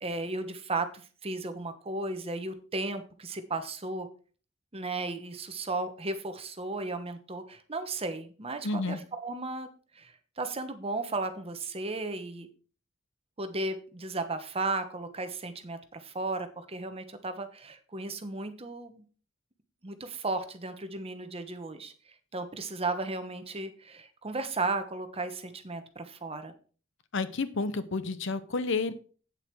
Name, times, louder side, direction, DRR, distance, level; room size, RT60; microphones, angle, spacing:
voice 1, 0.0-4.1 4.7-9.7 9.9-12.5 13.4-19.0 19.8-21.9 22.3-26.5, right 3 dB, 30° right, 8 dB, 1.1 m, -35 dB
voice 2, 8.6-9.0 27.1-28.9, left 3 dB, 65° left, 13 dB, 0.8 m, -30 dB
8.7 x 7.8 x 4.6 m, 0.40 s
head